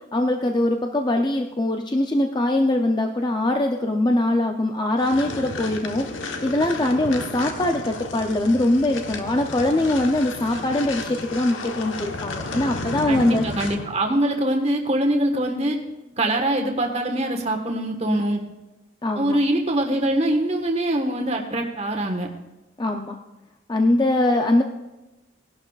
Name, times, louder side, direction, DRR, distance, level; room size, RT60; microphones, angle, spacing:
voice 1, 0.1-6.1 6.4-13.4 18.1-18.2 19.0-19.4 22.8-23.2 23.7-24.6, left 1 dB, 20° left, 4 dB, 0.5 m, -22 dB
sound 1, 5.0-14.0, left 3 dB, 80° left, 1.1 m, -33 dB
voice 2, 13.1-15.8 16.2-18.4 19.1-22.3, right 1 dB, 35° right, 2 dB, 1.4 m, -23 dB
18.5 x 11.5 x 2.4 m, 1.1 s
head